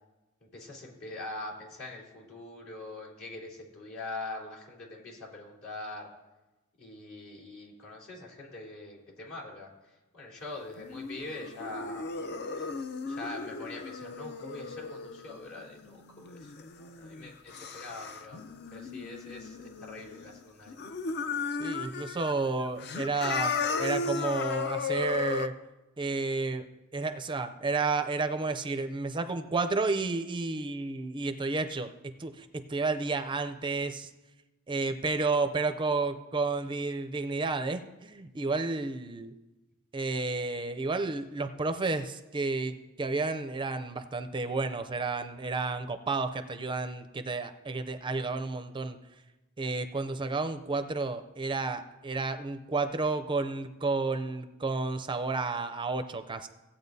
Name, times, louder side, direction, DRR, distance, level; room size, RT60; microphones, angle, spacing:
voice 1, 0.4-6.1 6.8-9.7 10.1-12.0 12.6-12.7 13.1-18.4 18.7-20.8, left 2 dB, 70° left, -5 dB, 3.4 m, -43 dB
sound 1, 10.8-20.4 20.7-22.3 22.7-25.5, left 4 dB, 50° left, 0.5 m, -35 dB
voice 2, 21.6-25.5 26.0-26.7 26.9-34.1 34.7-39.3 39.9-49.0 49.6-56.5, right 3 dB, 25° right, 9 dB, 0.4 m, -31 dB
17.0 x 8.7 x 2.7 m, 1.1 s
head